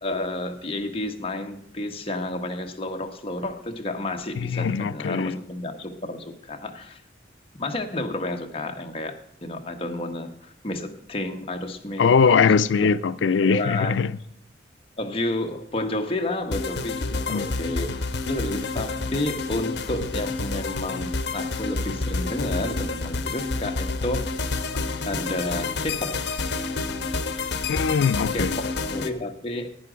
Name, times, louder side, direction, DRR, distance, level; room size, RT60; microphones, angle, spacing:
voice 1, 0.0-7.0 7.6-12.4 13.4-14.0 15.0-18.0 18.3-24.5 25.1-26.2 28.3-29.7, left 1 dB, 30° left, 1.1 m, -31 dB
voice 2, 4.4-5.4 12.0-14.1 17.3-17.5 27.7-28.6, left 5 dB, 85° left, 0.4 m, -21 dB
sound 1, 16.5-29.1, left 3 dB, 70° left, 0.9 m, -29 dB
11.5 x 8.9 x 5.0 m
head